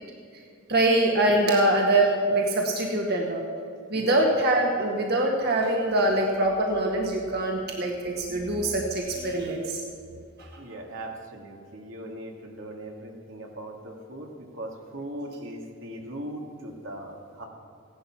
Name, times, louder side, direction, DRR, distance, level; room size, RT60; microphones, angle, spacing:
voice 1, 0.7-3.4 3.9-9.8 10.4-10.6, right 1 dB, 55° right, 0 dB, 1.7 m, -24 dB
voice 2, 3.9-4.2 10.6-17.4, right 1 dB, 85° right, 0 dB, 2.4 m, -39 dB
16.0 x 11.5 x 6.0 m, 2.4 s
head